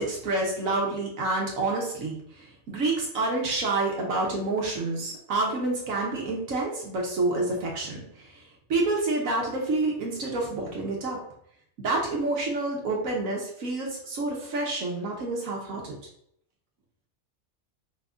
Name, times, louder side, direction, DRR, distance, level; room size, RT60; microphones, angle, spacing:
voice 1, 0.0-8.4 8.7-11.2 11.8-16.0, right 2 dB, 70° right, -1 dB, 1.4 m, -28 dB
5.2 x 2.6 x 3.5 m, 0.69 s
omnidirectional pair, 1.5 m